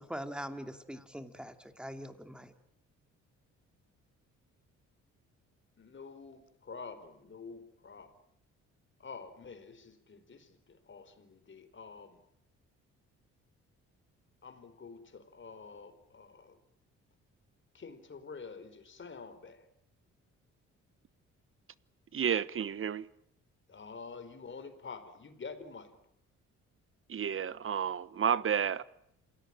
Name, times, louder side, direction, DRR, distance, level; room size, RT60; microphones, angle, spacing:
voice 1, 0.0-2.5, equal, 5° right, 2.7 m, -42 dB
voice 2, 5.8-8.1 9.0-12.2 14.4-16.6 17.7-19.7 23.7-25.9, left 5 dB, 40° left, 4.4 m, -48 dB
voice 3, 22.1-23.1 27.1-28.8, right 8 dB, 45° right, 1.1 m, -31 dB
28.0 x 17.5 x 8.9 m
cardioid pair, 90°, 30 cm